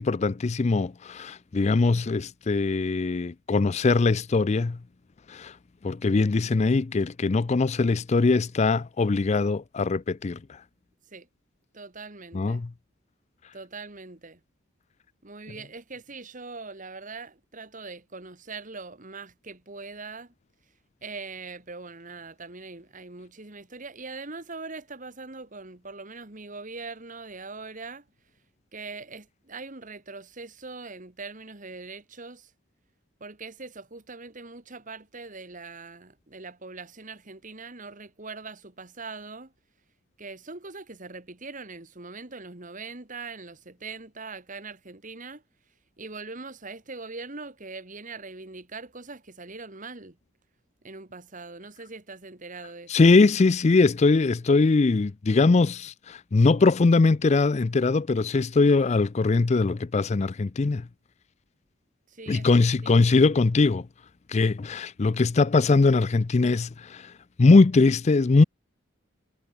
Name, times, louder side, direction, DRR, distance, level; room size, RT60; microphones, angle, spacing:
voice 1, 0.0-4.8 5.3-5.5 5.8-10.6 12.3-12.7 52.9-60.9 62.3-63.9 64.3-67.1 67.4-68.4, left 3 dB, 35° left, 0.4 m, -21 dB
voice 2, 11.7-12.6 13.5-14.4 15.2-20.3 21.0-28.0 28.7-32.5 33.2-39.5 40.2-45.4 46.0-50.2 50.8-53.1 62.1-63.3, right 3 dB, 40° right, 2.0 m, -41 dB
head